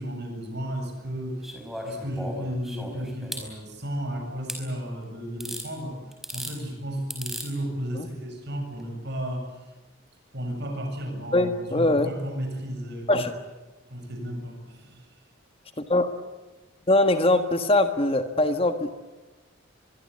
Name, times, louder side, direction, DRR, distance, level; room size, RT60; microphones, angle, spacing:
voice 1, 0.0-1.4 1.8-6.0 6.3-9.7 10.3-13.3 13.9-15.1, equal, 55° right, 4 dB, 7.6 m, -33 dB
sound 1, 1.4-3.5 4.5-4.6 5.4-5.7 6.1-6.6 7.1-7.5 8.7-8.8, equal, ahead, 4.8 m, -36 dB
voice 2, 11.3-12.1 13.1-13.3 15.9-16.1 16.9-18.9, left 2 dB, 25° left, 8 dB, 1.6 m, -22 dB
24.5 x 23.0 x 8.7 m, 1.1 s
head